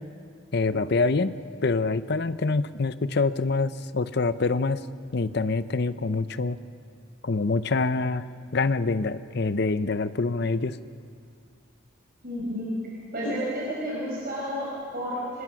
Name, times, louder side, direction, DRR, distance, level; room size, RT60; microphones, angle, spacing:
voice 1, 0.5-1.3 1.6-4.8 5.1-6.6 7.2-8.2 8.5-10.8 13.3-13.4, left 3 dB, 50° left, 13 dB, 0.7 m, -25 dB
voice 2, 12.2-12.7 13.1-15.4, equal, 45° right, -5 dB, 5.1 m, -31 dB
25.5 x 20.5 x 6.3 m, 2.3 s
head